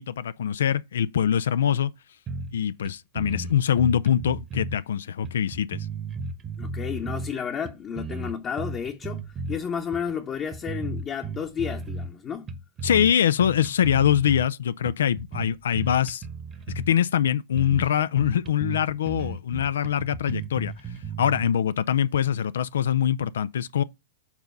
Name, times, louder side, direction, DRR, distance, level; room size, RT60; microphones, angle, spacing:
voice 1, 0.0-1.9 2.5-5.9 12.8-16.3 16.7-23.8, left 9 dB, 80° left, 0.3 m, -24 dB
sound 1, 2.3-2.6 2.8-2.9 3.1-4.8 5.2-7.3 7.6-9.6 9.9-10.1 10.5-12.1 12.5-13.1 13.4-14.5 14.8-16.9 17.3-17.4 17.6-17.9 18.2-21.5, right 3 dB, 25° right, 1.1 m, -35 dB
voice 2, 6.6-12.5, left 7 dB, 25° left, 0.9 m, -32 dB
7.1 x 3.9 x 5.3 m
hypercardioid pair, 115°, 0 cm